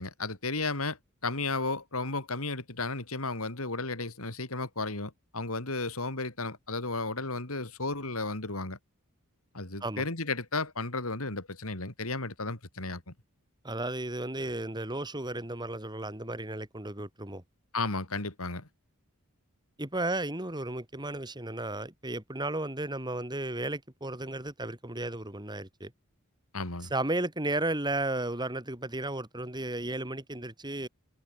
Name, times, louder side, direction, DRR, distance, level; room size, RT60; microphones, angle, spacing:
voice 1, 0.0-8.8 9.5-13.1 17.7-18.7 26.5-26.9, left 3 dB, 75° left, 4.0 m, -34 dB
voice 2, 13.6-17.4 19.8-25.9 26.9-30.9, right 2 dB, 20° right, 3.6 m, -34 dB
head